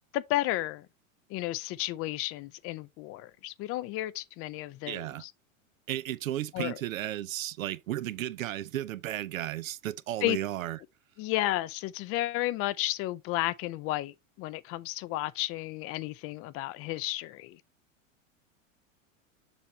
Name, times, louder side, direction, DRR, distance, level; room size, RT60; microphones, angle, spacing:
voice 1, 0.1-0.9 1.3-5.3 6.5-6.8 10.2-10.4 11.2-17.6, left 16 dB, 35° left, 0.4 m, -32 dB
voice 2, 4.9-5.2 5.9-10.8, right 13 dB, 85° right, 0.7 m, -34 dB
7.0 x 5.6 x 3.0 m
hypercardioid pair, 105°, 39 cm